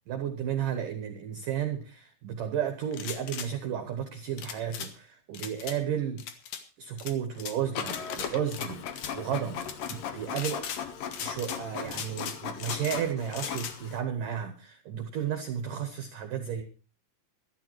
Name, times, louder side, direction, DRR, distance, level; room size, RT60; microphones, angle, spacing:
voice 1, 0.1-6.2 6.8-8.8 9.1-10.6 11.2-16.6, right 9 dB, 75° right, 6 dB, 1.9 m, -33 dB
sound 1, 2.9-3.5 4.4-4.9 5.3-5.8 6.2-6.6 7.0-7.5 7.9-8.7 8.9-9.1 9.6-10.0 10.3-10.8 11.1-11.6 11.9-13.0 13.3-13.7, left 8 dB, 85° left, 1.8 m, -38 dB
Printer, 7.7-14.0, left 8 dB, 70° left, 2.1 m, -38 dB
14.0 x 13.0 x 4.7 m, 0.37 s
omnidirectional pair, 5.9 m